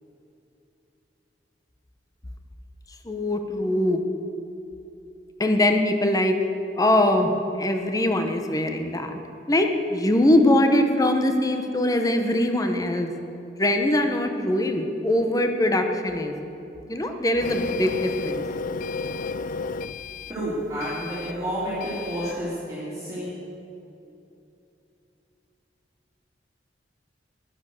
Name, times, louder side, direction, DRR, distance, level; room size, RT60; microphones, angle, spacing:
voice 1, 3.0-4.0 5.4-6.3 6.7-7.3 7.6-9.1 9.5-13.1 13.6-16.3 16.9-18.4, left 1 dB, 20° left, 6 dB, 0.9 m, -22 dB
Printer, 17.4-22.4, left 4 dB, 50° left, 0.4 m, -33 dB
voice 2, 20.3-23.3, equal, 20° right, -10 dB, 3.2 m, -30 dB
11.5 x 11.0 x 6.5 m, 2.8 s
head